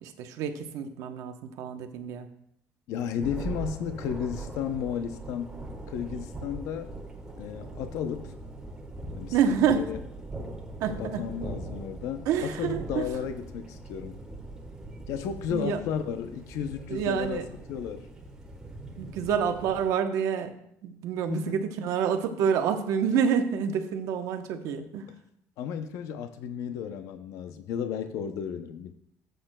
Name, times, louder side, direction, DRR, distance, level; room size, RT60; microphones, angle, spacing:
voice 1, 0.0-2.3 9.3-9.8 10.8-11.2 12.3-13.1 15.5-15.8 16.9-17.5 19.0-20.5 20.8-25.1, right 7 dB, 75° right, 7 dB, 0.9 m, -28 dB
voice 2, 2.9-5.6 5.9-7.0 7.4-8.3 9.2-9.3 9.7-10.0 11.0-14.3 15.1-17.4 17.7-18.1 21.3-21.6 25.6-28.9, left 8 dB, 75° left, 9 dB, 0.6 m, -33 dB
Thunder, 3.2-19.9, right 2 dB, 10° right, 1.2 m, -41 dB
13.5 x 7.9 x 2.2 m, 0.74 s
cardioid pair, 160°, 6 cm